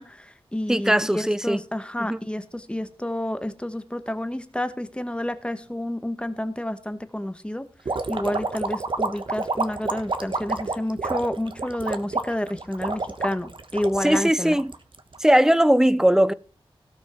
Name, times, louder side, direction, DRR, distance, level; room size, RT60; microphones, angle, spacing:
voice 1, 0.0-7.6 8.1-14.6, left 1 dB, 10° left, 1.2 m, -30 dB
voice 2, 0.7-1.6 2.0-2.2 14.0-14.7 15.2-16.3, right 1 dB, 5° right, 0.6 m, -19 dB
sound 1, 7.8-15.2, right 3 dB, 55° right, 1.4 m, -29 dB
17.5 x 6.1 x 4.4 m
wide cardioid pair, 90°, 10 cm